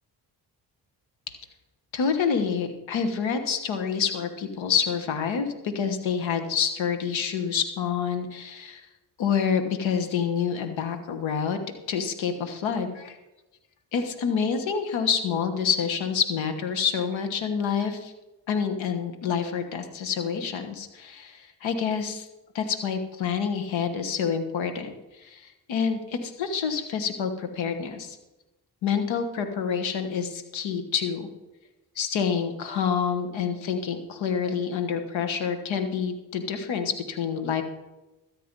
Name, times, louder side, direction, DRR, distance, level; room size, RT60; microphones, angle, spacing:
voice 1, 1.9-8.9 9.2-11.6 11.9-13.2 13.9-18.1 18.5-22.3 22.5-28.2 28.8-31.3 32.0-37.6, left 6 dB, 85° left, 7 dB, 1.3 m, -27 dB
13.0 x 8.8 x 5.3 m, 1.0 s
supercardioid pair, 40°, 45 cm